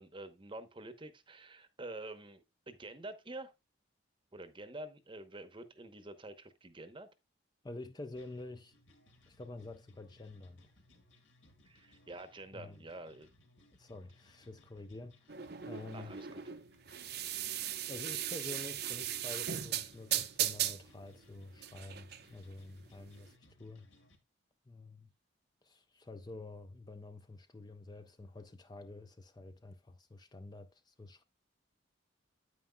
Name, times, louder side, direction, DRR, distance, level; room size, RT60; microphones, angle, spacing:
voice 1, 0.0-3.5 4.3-7.1 11.6-13.3 15.9-16.4, right 2 dB, 25° right, 0.9 m, -48 dB
voice 2, 7.6-8.7 9.3-10.6 12.5-12.8 13.7-16.1 17.9-23.9 24.7-25.1 25.6-31.2, left 2 dB, 20° left, 0.5 m, -48 dB
sound 1, 8.2-24.2, left 1 dB, 65° left, 2.0 m, -65 dB
sound 2, 15.3-23.3, right 11 dB, 55° right, 0.7 m, -38 dB
9.4 x 8.7 x 2.2 m
head